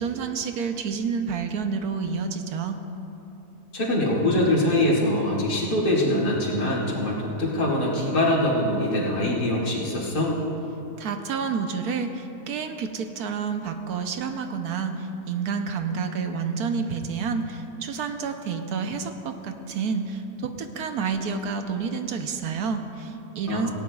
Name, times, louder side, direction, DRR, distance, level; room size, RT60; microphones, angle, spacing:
voice 1, 0.0-2.8 11.0-23.7, right 5 dB, 75° right, 6 dB, 1.3 m, -29 dB
voice 2, 3.7-10.3 23.5-23.7, left 1 dB, 85° left, -5 dB, 2.9 m, -23 dB
18.5 x 16.5 x 2.4 m, 2.9 s
omnidirectional pair, 1.7 m